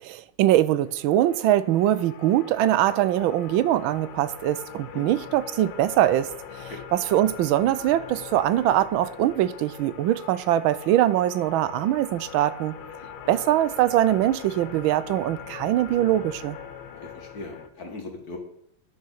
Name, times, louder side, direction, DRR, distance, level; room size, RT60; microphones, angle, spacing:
voice 1, 0.0-6.3 6.6-12.8 13.3-16.6, right 13 dB, 80° right, 1.4 m, -22 dB
sound 1, 0.9-17.7, left 8 dB, 80° left, 1.7 m, -41 dB
voice 2, 17.0-18.4, left 3 dB, 45° left, 2.3 m, -39 dB
9.7 x 6.7 x 6.6 m
omnidirectional pair, 2.3 m